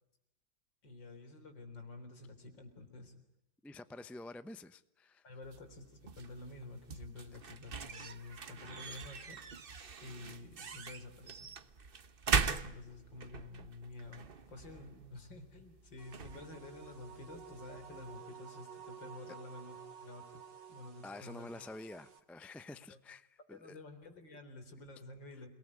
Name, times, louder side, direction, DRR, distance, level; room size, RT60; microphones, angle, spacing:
voice 1, 0.8-3.2 5.2-5.8 6.2-9.4 10.0-11.5 12.6-20.4 20.7-21.5 22.9-23.0 23.5-25.5, left 2 dB, 80° left, 4.5 m, -50 dB
voice 2, 3.6-5.2 19.3-19.4 21.0-23.8 25.3-25.4, left 2 dB, ahead, 0.4 m, -49 dB
sound 1, 5.4-18.2, right 5 dB, 35° right, 1.1 m, -41 dB
sound 2, 16.0-22.2, right 7 dB, 75° right, 2.7 m, -52 dB
29.0 x 19.0 x 9.9 m
omnidirectional pair, 2.0 m